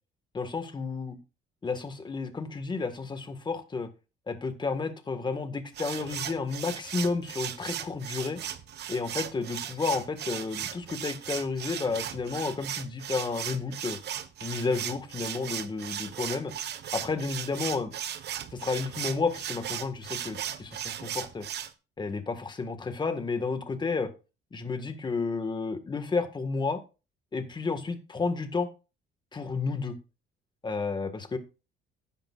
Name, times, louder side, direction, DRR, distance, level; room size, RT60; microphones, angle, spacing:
voice 1, 0.3-1.2 1.6-3.9 4.3-8.4 8.9-14.0 14.4-16.5 16.9-17.9 18.5-21.5 22.0-24.1 24.5-26.8 27.3-28.7 29.3-30.0 30.6-31.4, left 4 dB, 20° left, 8 dB, 1.7 m, -31 dB
sound 1, 5.7-21.7, right 10 dB, 55° right, 1.2 m, -37 dB
14.5 x 10.5 x 2.5 m, 0.31 s
cardioid pair, 130°, 21 cm